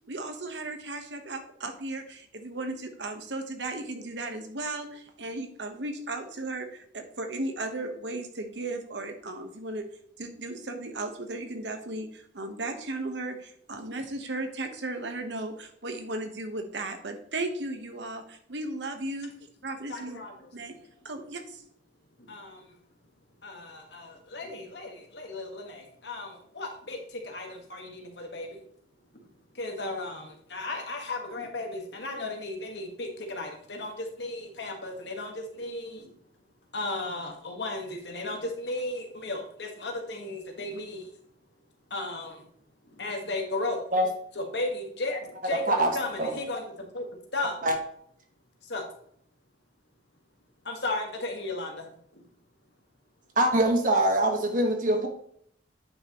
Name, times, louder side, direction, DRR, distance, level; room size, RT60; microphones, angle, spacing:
voice 1, 0.1-9.8 10.2-19.3 19.6-20.2 20.5-20.8 21.0-21.6, right 2 dB, 80° right, 6 dB, 1.2 m, -35 dB
voice 2, 19.9-20.5 22.2-22.8 23.4-28.5 29.1-29.3 29.5-36.1 36.7-41.1 41.9-42.4 42.9-43.8 44.3-45.6 45.9-47.1 47.3-47.7 48.6-48.8 50.6-52.2, left 2 dB, 70° left, 3 dB, 1.6 m, -35 dB
voice 3, 53.4-55.1, right 1 dB, 50° right, 3 dB, 1.4 m, -23 dB
9.4 x 5.8 x 3.0 m, 0.65 s
head